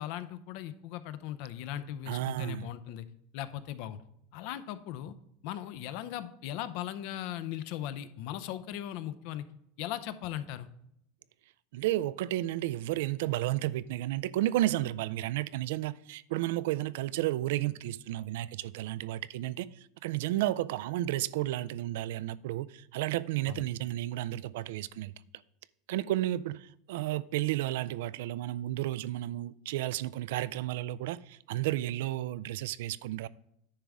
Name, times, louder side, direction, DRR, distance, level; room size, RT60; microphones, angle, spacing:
voice 1, 0.0-3.1 3.3-4.0 4.3-5.1 5.4-9.5 9.8-10.7 23.5-23.7, left 11 dB, 60° left, 0.6 m, -38 dB
voice 2, 2.1-2.6 11.7-19.7 20.0-25.1 25.9-33.3, right 15 dB, 80° right, 0.3 m, -32 dB
10.0 x 3.5 x 6.2 m
supercardioid pair, 140°, 0 cm